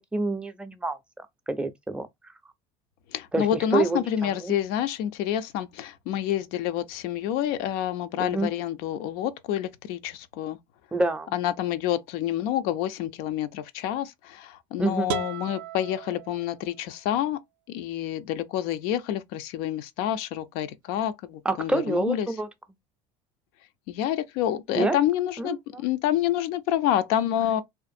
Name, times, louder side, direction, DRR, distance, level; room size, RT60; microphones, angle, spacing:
voice 1, 0.1-2.1 3.3-4.5 8.2-8.5 10.9-11.3 14.8-15.1 21.4-22.5 24.7-25.0 25.4-25.5, right 2 dB, 5° right, 0.5 m, -27 dB
voice 2, 3.1-10.6 11.3-17.4 17.7-22.3 23.9-27.6, left 11 dB, 70° left, 0.5 m, -28 dB
sound 1, 15.1-17.0, right 11 dB, 80° right, 0.4 m, -36 dB
2.6 x 2.4 x 2.5 m
supercardioid pair, 95°, 16 cm